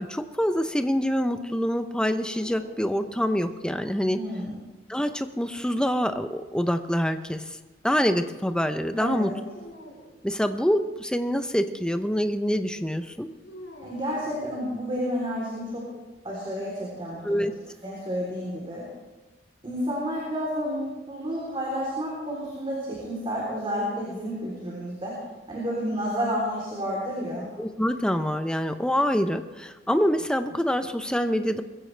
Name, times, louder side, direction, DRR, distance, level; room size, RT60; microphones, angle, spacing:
voice 1, 0.0-4.2 4.9-7.6 7.8-9.3 10.2-13.3 17.2-17.5 27.6-31.6, equal, 5° left, 8 dB, 0.7 m, -26 dB
sound 1, 2.2-3.8 5.4-6.5 9.4-10.2 13.4-15.1, left 1 dB, 90° left, 5.1 m, -48 dB
voice 2, 4.1-4.5 9.0-9.3 13.8-15.9 16.2-17.5 17.8-18.8 19.6-25.2 25.5-27.5, equal, 30° right, -5 dB, 3.6 m, -30 dB
21.5 x 15.5 x 3.4 m, 1.2 s
head